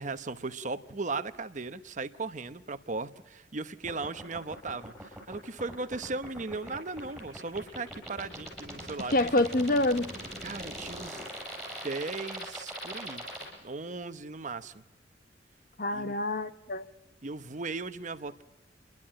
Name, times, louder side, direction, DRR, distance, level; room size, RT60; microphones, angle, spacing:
voice 1, 0.0-9.3 10.4-11.3 11.8-14.8 15.9-16.2 17.2-18.4, right 3 dB, 45° right, 0.9 m, -37 dB
sound 1, 3.8-13.5, right 1 dB, ahead, 7.9 m, -40 dB
voice 2, 9.1-10.1 15.8-16.9, left 1 dB, 50° left, 1.0 m, -26 dB
29.0 x 12.0 x 8.8 m
head